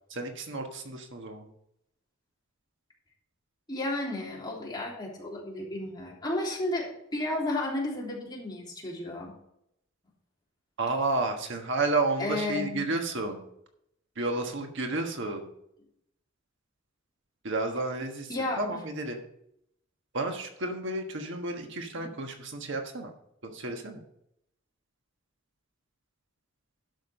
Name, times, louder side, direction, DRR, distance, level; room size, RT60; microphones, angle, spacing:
voice 1, 0.1-1.5 10.8-13.5 14.2-15.4 17.4-18.3 18.6-19.2 20.1-23.1 23.4-24.0, right 2 dB, 65° right, 4 dB, 1.4 m, -31 dB
voice 2, 3.7-9.3 12.2-12.9 18.3-18.6 21.9-22.1, left 1 dB, 20° left, -3 dB, 3.2 m, -33 dB
11.5 x 6.0 x 5.6 m, 0.77 s
head